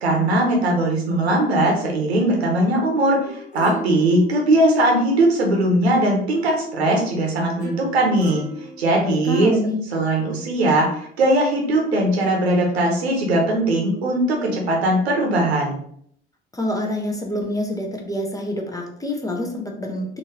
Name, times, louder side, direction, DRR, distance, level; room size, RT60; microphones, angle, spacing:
voice 1, 0.0-8.4 8.8-9.5 9.9-15.8, right 1 dB, 75° right, 0 dB, 0.9 m, -19 dB
sound 1, 3.3-5.6 7.6-9.6 10.2-10.3, right 1 dB, 80° left, 1.0 m, -37 dB
voice 2, 9.0-9.8 16.5-20.2, left 1 dB, 10° left, 1 dB, 0.7 m, -27 dB
3.8 x 2.5 x 3.0 m, 0.65 s
figure-of-eight pair, 55°, 31 cm